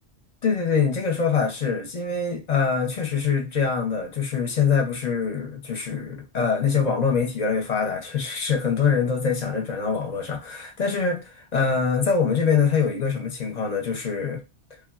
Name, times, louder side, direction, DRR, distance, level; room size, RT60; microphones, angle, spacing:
voice 1, 0.4-14.4, left 6 dB, 45° left, 0.6 m, -24 dB
3.3 x 2.2 x 2.3 m
omnidirectional pair, 1.2 m